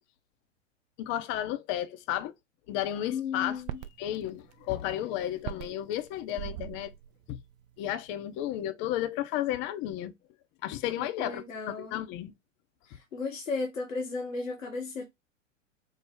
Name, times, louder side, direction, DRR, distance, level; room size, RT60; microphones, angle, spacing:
voice 1, 1.0-2.3 2.7-3.6 4.0-6.9 7.3-7.4 7.8-10.1 10.6-12.3, left 12 dB, 30° left, 0.5 m, -33 dB
voice 2, 3.1-3.8 11.0-12.0 12.9-15.0, left 4 dB, 85° left, 1.0 m, -35 dB
sound 1, 3.4-8.2 8.6-8.7, right 14 dB, 35° right, 0.4 m, -43 dB
4.7 x 2.0 x 3.3 m
hypercardioid pair, 105°, 38 cm